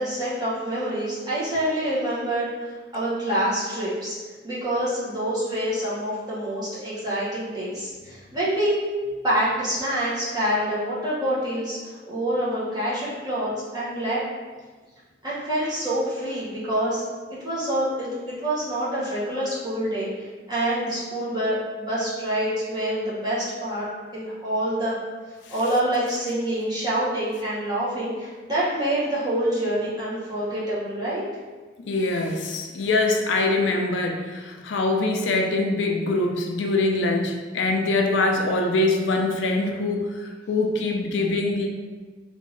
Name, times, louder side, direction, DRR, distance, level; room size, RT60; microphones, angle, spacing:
voice 1, 0.0-2.6 2.9-4.2 4.4-8.7 9.2-14.2 15.2-17.0 17.4-23.9 24.1-25.0 25.5-31.2, right 1 dB, 20° right, -8 dB, 1.0 m, -26 dB
voice 2, 31.9-40.1 40.5-41.7, left 2 dB, 85° left, 2 dB, 0.4 m, -23 dB
3.4 x 2.5 x 3.2 m, 1.3 s
head